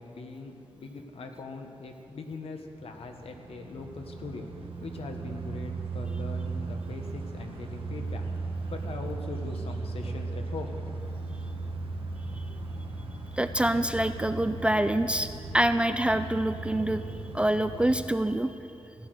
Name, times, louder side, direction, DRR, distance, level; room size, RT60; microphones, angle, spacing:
voice 1, 0.0-8.2 8.7-10.8, left 3 dB, 65° left, 4 dB, 1.3 m, -41 dB
sound 1, 2.7-18.0, right 3 dB, 55° right, 1.5 m, -37 dB
voice 2, 13.3-15.3 15.5-17.0 17.3-18.5, right 1 dB, 10° right, 10 dB, 0.3 m, -26 dB
15.0 x 10.0 x 6.4 m, 2.7 s
wide cardioid pair, 160°, 11 cm